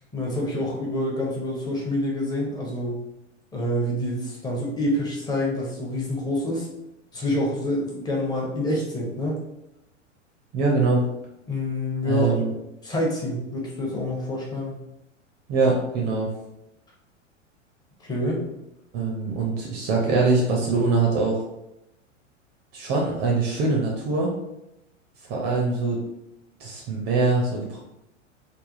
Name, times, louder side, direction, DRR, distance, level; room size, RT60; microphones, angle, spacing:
voice 1, 0.1-3.0 3.5-6.7 7.1-9.4 11.5-12.4 12.8-14.8 18.0-18.4, left 1 dB, 10° left, -2 dB, 0.6 m, -27 dB
voice 2, 10.5-11.0 12.0-12.5 15.5-16.3 18.9-21.4 22.7-24.3 25.3-26.0 26.6-27.8, right 3 dB, 30° right, -2 dB, 0.5 m, -23 dB
3.3 x 2.2 x 2.5 m, 0.87 s
figure-of-eight pair, 95°, 37 cm